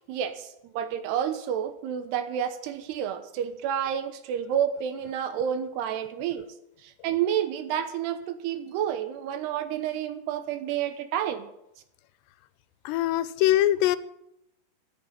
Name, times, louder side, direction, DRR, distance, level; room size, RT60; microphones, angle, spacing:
voice 1, 0.1-6.5 6.8-11.5, right 9 dB, 80° right, 10 dB, 3.0 m, -30 dB
voice 2, 12.9-14.0, left 13 dB, 85° left, 15 dB, 2.8 m, -22 dB
13.5 x 7.8 x 9.0 m, 0.82 s
omnidirectional pair, 4.9 m